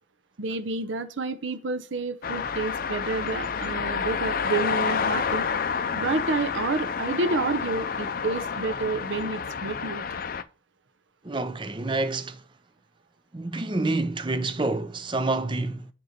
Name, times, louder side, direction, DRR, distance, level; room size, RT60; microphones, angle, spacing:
voice 1, 0.4-5.5 5.9-10.0, right 3 dB, 70° right, 0.7 m, -29 dB
sound 1, 2.2-10.4, left 6 dB, 45° left, 0.5 m, -29 dB
voice 2, 11.2-12.4 13.3-15.9, right 2 dB, 25° right, 0.5 m, -28 dB
6.7 x 4.6 x 5.1 m
head